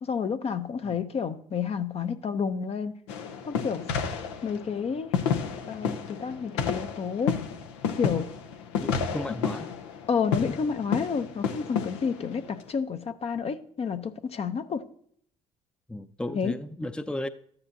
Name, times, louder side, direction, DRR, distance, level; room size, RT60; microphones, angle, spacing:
voice 1, 0.0-3.0 3.5-3.8 4.4-5.1 5.7-7.4 8.0-8.3 10.1-14.8 16.3-16.5, left 6 dB, 45° left, 0.7 m, -30 dB
sound 1, 3.1-12.7, left 7 dB, 90° left, 0.7 m, -31 dB
voice 2, 8.8-9.7 15.9-17.3, left 1 dB, 5° left, 0.6 m, -34 dB
13.0 x 9.8 x 2.7 m
hypercardioid pair, 60°, 14 cm